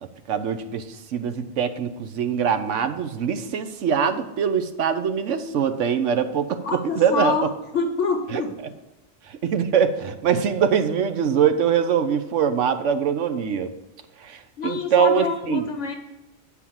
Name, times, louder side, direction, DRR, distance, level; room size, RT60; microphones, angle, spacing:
voice 1, 0.3-0.8 1.1-7.4 8.3-8.4 9.4-13.7 14.2-15.6, right 7 dB, 80° right, 9 dB, 1.1 m, -23 dB
voice 2, 6.6-7.5 7.7-8.5 14.6-15.9, left 4 dB, 80° left, 4 dB, 1.1 m, -26 dB
8.2 x 4.7 x 7.4 m, 1.0 s
omnidirectional pair, 1.2 m